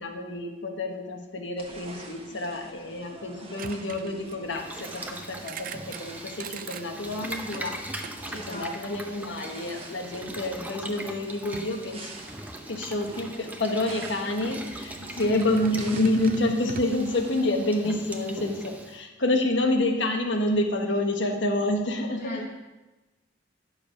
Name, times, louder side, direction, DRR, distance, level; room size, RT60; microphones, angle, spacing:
voice 1, 0.0-7.8 8.3-12.1 12.7-22.4, left 1 dB, 70° left, 3 dB, 1.3 m, -28 dB
sound 1, 1.6-17.4, right 2 dB, 30° right, 1.2 m, -47 dB
sound 2, 3.6-4.8 5.3-6.0 6.4-6.9 7.4-9.2 9.8-10.1 10.5-10.9 11.5-11.8 12.9-13.0 13.4-14.2 14.8-17.5, right 6 dB, 45° right, 0.4 m, -42 dB
Boiling, 4.5-19.0, right 1 dB, 10° right, 0.7 m, -41 dB
voice 2, 8.3-8.9 15.0-15.5 22.2-22.5, left 1 dB, 45° left, 1 dB, 0.7 m, -37 dB
11.0 x 6.7 x 5.1 m, 1.1 s
head